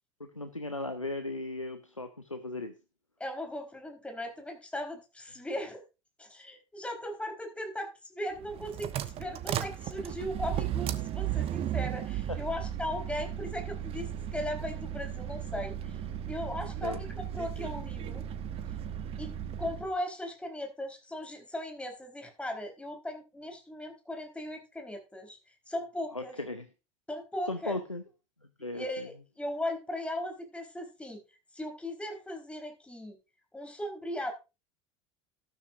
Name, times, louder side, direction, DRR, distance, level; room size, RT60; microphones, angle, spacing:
voice 1, 0.2-2.7 12.3-12.4 16.8-17.0 26.1-26.7 27.5-28.0 28.6-29.1, left 2 dB, 90° left, 9 dB, 0.8 m, -37 dB
voice 2, 3.2-5.8 6.2-16.0 16.3-18.2 19.2-19.3 19.6-25.4 25.7-26.3 27.1-27.8 28.7-31.2 31.5-33.2 33.5-34.3, left 1 dB, 5° left, 4 dB, 4.2 m, -38 dB
sound 1, 8.4-19.9, right 10 dB, 35° right, 1.1 m, -35 dB
13.5 x 12.5 x 2.6 m, 0.28 s
figure-of-eight pair, 75°, 16 cm